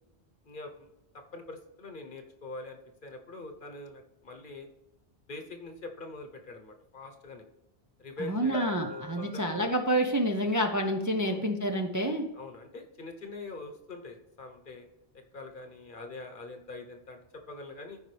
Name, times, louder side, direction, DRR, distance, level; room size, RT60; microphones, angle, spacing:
voice 1, 0.4-4.7 5.3-7.4 8.0-9.7 11.1-11.4 12.3-14.9 15.1-17.2 17.5-18.0, left 2 dB, 50° left, 5 dB, 1.2 m, -44 dB
voice 2, 8.2-12.3, right 1 dB, 20° right, 3 dB, 0.5 m, -28 dB
Bell, 8.5-10.1, left 3 dB, 75° left, 1.0 m, -41 dB
14.0 x 5.2 x 3.4 m, 0.93 s
omnidirectional pair, 1.1 m